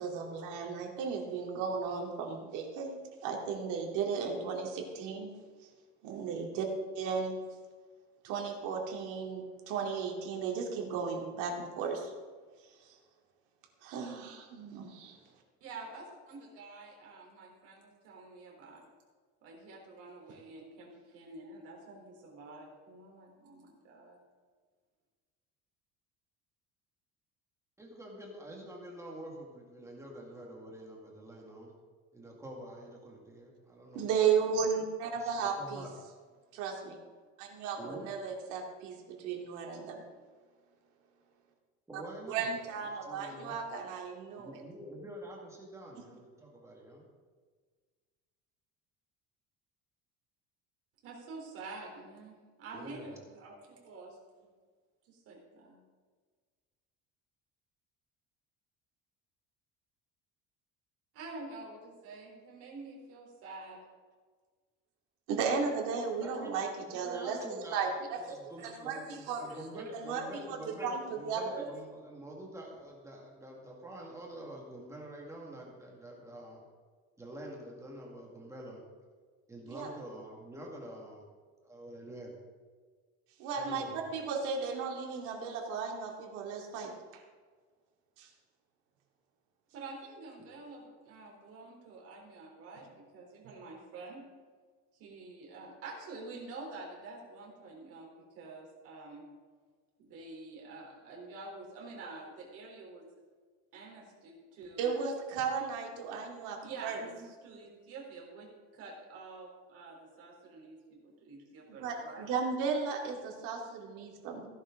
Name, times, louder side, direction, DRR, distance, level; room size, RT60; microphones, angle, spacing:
voice 1, 0.0-5.3 6.0-6.6 7.0-7.4 8.2-12.1 13.8-15.2 33.9-35.8 36.5-37.0 37.4-40.0 42.3-44.6 46.0-46.1 65.3-69.4 69.7-70.6 70.8-71.7 79.7-79.9 83.4-87.2 88.2-88.3 104.8-107.0 111.8-114.5, right 5 dB, 80° right, 1 dB, 2.6 m, -35 dB
voice 2, 15.6-18.8 19.4-24.2 51.0-54.2 55.0-55.8 61.1-63.8 89.7-94.2 94.9-99.3 100.0-103.0 103.7-105.0 106.6-112.3, right 3 dB, 50° right, 0 dB, 3.8 m, -48 dB
voice 3, 27.8-31.7 32.1-34.1 35.2-35.9 37.8-38.1 41.9-42.5 43.0-43.6 44.4-47.1 52.7-53.2 66.2-68.0 68.3-76.6 77.2-78.8 79.5-81.2 81.6-82.3 83.5-84.0, right 1 dB, 10° right, -2 dB, 2.0 m, -47 dB
16.5 x 11.0 x 3.8 m, 1.5 s
cardioid pair, 175°, 30 cm